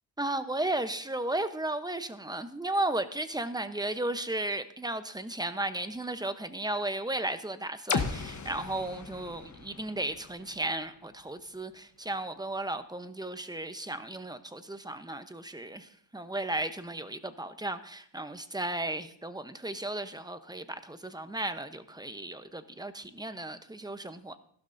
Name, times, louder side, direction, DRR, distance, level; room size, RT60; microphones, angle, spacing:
voice 1, 0.2-24.3, right 2 dB, 10° right, 10 dB, 0.9 m, -34 dB
sound 1, 7.9-11.8, left 5 dB, 40° left, 1.2 m, -37 dB
15.0 x 12.0 x 2.7 m, 0.62 s
cardioid pair, 85°, 45 cm